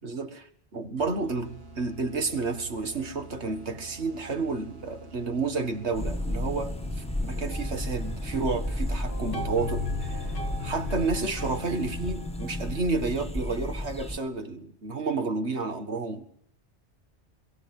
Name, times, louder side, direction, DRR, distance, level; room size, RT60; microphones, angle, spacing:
voice 1, 0.0-10.3 10.6-16.2, right 3 dB, 80° right, 8 dB, 2.2 m, -31 dB
sound 1, 1.0-12.4, right 3 dB, 60° right, 1.9 m, -48 dB
sound 2, 5.9-14.2, left 1 dB, 5° left, 1.3 m, -33 dB
sound 3, 7.5-8.7 9.1-13.0, left 4 dB, 60° left, 1.6 m, -38 dB
22.5 x 14.5 x 9.8 m, 0.67 s
omnidirectional pair, 1.1 m